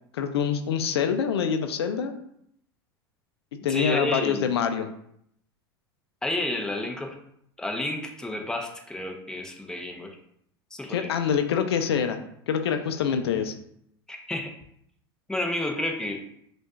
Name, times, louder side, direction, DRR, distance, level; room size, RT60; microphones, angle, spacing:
voice 1, 0.1-2.1 3.6-4.9 10.9-12.2 12.5-13.5, left 7 dB, 80° left, 7 dB, 0.5 m, -25 dB
voice 2, 3.7-4.5 6.2-7.2 7.6-10.2 10.7-11.1 14.1-14.5 15.3-16.2, left 1 dB, 5° left, 2 dB, 0.7 m, -30 dB
6.0 x 2.5 x 2.4 m, 0.70 s
hypercardioid pair, 90°, 13 cm